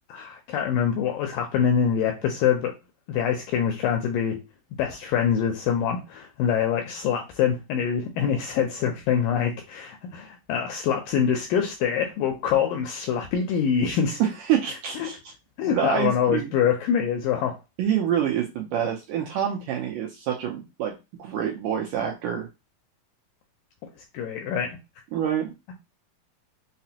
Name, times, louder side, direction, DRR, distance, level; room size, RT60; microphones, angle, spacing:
voice 1, 0.1-2.7 3.1-4.4 4.8-14.2 15.0-15.1 15.6-17.6 24.1-24.8, left 8 dB, 80° left, 3 dB, 2.0 m, -25 dB
voice 2, 14.5-15.2 15.7-16.5 17.8-20.9 21.2-22.5 25.1-25.5, right 9 dB, 80° right, 0 dB, 1.9 m, -26 dB
5.8 x 2.0 x 2.8 m, 0.25 s
omnidirectional pair, 4.3 m